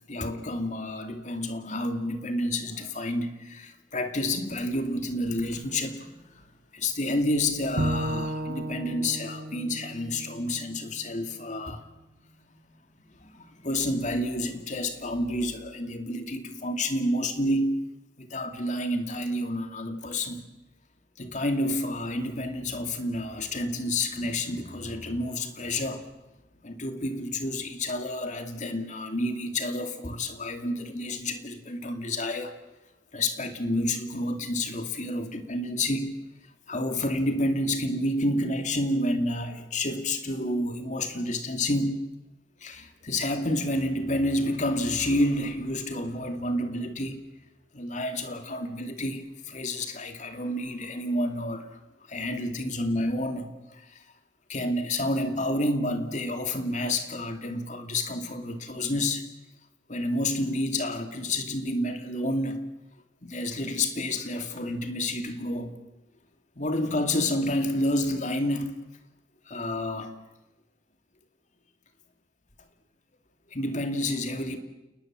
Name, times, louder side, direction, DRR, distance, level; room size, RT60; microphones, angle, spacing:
voice 1, 0.1-6.4 6.7-11.8 13.2-17.9 18.2-20.4 21.2-26.1 26.6-32.5 33.1-36.2 36.7-42.1 42.6-47.2 47.7-51.8 52.1-54.0 54.5-59.3 59.9-62.7 63.2-65.8 66.6-68.8 69.5-70.1 73.5-74.6, left 1 dB, 40° left, 7 dB, 2.4 m, -29 dB
Bowed string instrument, 7.8-11.0, right 1 dB, 60° right, 1.7 m, -33 dB
29.5 x 20.0 x 7.5 m, 1.0 s
head